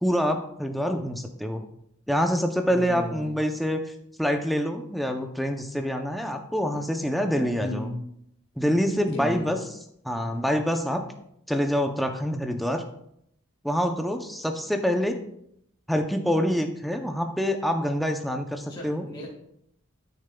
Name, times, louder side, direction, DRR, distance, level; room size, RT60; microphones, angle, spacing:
voice 1, 0.0-1.6 2.1-3.8 4.2-7.9 8.6-9.6 10.0-11.1 11.5-12.8 13.6-15.2 15.9-19.1, equal, ahead, 4 dB, 0.5 m, -26 dB
voice 2, 2.7-3.3 7.6-8.0 9.1-9.5 18.6-19.3, left 1 dB, 20° left, -3 dB, 1.7 m, -34 dB
12.5 x 6.5 x 2.3 m, 0.74 s
head